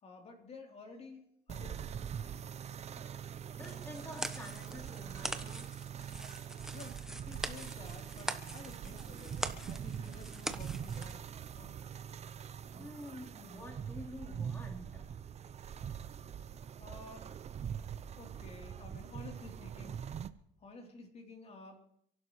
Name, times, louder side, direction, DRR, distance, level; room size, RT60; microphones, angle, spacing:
voice 1, 0.0-2.0 6.7-11.2 11.5-11.8 16.8-17.3 18.2-20.0 20.6-21.8, left 3 dB, 40° left, 1 dB, 3.5 m, -52 dB
sound 1, 1.5-20.3, right 8 dB, 40° right, 0.7 m, -43 dB
voice 2, 3.1-5.7 12.7-15.1, left 1 dB, 15° left, -3 dB, 3.9 m, -49 dB
sound 2, 3.6-11.2, right 1 dB, 5° right, 1.1 m, -43 dB
29.0 x 11.5 x 3.2 m, 0.70 s
cardioid pair, 110°, 17 cm